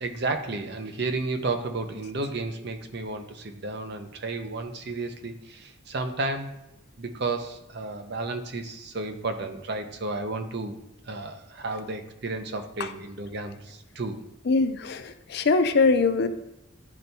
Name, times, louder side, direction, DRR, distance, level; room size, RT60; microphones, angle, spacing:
voice 1, 0.0-6.5 7.0-10.8 11.1-14.2, right 3 dB, 55° right, 7 dB, 0.7 m, -32 dB
voice 2, 14.5-16.3, left 4 dB, 55° left, 10 dB, 0.5 m, -22 dB
11.0 x 4.4 x 2.7 m, 0.87 s
head